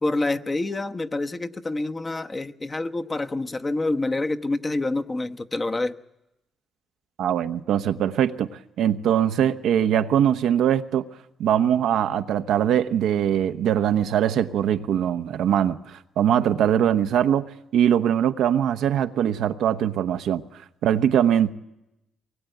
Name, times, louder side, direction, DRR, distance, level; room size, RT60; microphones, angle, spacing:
voice 1, 0.0-6.0, left 2 dB, 25° left, 7 dB, 1.0 m, -27 dB
voice 2, 7.2-8.5 8.8-11.0 11.4-17.4 17.7-20.4 20.8-21.5, right 9 dB, 80° right, 8 dB, 1.0 m, -22 dB
23.0 x 20.5 x 9.2 m, 0.89 s
cardioid pair, 90°, 0 cm